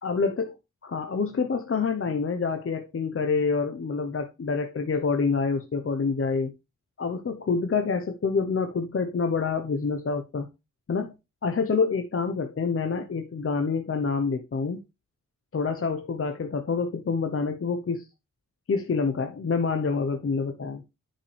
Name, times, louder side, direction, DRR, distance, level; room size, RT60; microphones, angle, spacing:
voice 1, 0.0-0.6 0.8-6.5 7.0-10.5 10.9-11.1 11.4-14.8 15.5-18.0 18.7-20.8, left 4 dB, 45° left, 0.9 m, -27 dB
10.0 x 5.7 x 3.3 m
wide cardioid pair, 160°, 31 cm